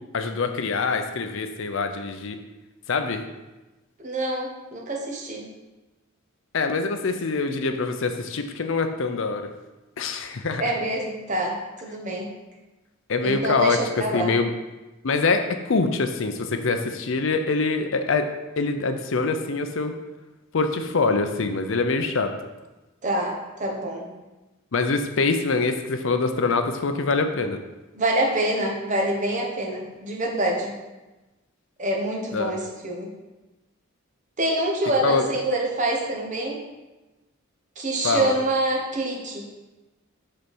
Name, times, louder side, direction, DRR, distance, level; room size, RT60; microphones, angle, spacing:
voice 1, 0.1-2.4 2.9-3.2 6.5-9.5 10.0-10.6 13.1-14.5 15.0-18.3 18.6-19.9 20.5-22.3 24.7-27.6 32.3-32.5 35.0-35.2 38.0-38.3, left 4 dB, 60° left, 7 dB, 0.6 m, -24 dB
voice 2, 4.0-5.5 10.6-12.3 13.2-14.4 23.0-24.1 27.9-30.7 31.8-33.1 34.4-36.6 37.8-39.4, right 1 dB, 35° right, -1 dB, 1.1 m, -26 dB
5.3 x 4.2 x 6.1 m, 1.1 s
head